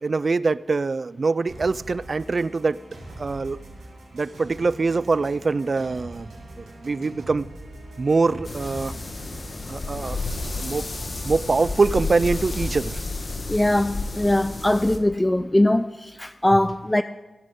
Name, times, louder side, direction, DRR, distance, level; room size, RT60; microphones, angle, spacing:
voice 1, 0.0-2.8 3.2-3.6 4.1-7.5 8.0-9.0 9.7-10.2 10.6-10.9 11.2-13.0, right 4 dB, 55° right, 0.4 m, -24 dB
sound 1, 1.5-12.9, right 1 dB, 90° right, 5.2 m, -42 dB
sound 2, 8.4-15.0, left 3 dB, 50° left, 1.3 m, -31 dB
voice 2, 13.5-17.0, left 1 dB, 15° left, 0.4 m, -21 dB
22.0 x 7.6 x 3.8 m
cardioid pair, 45°, 0 cm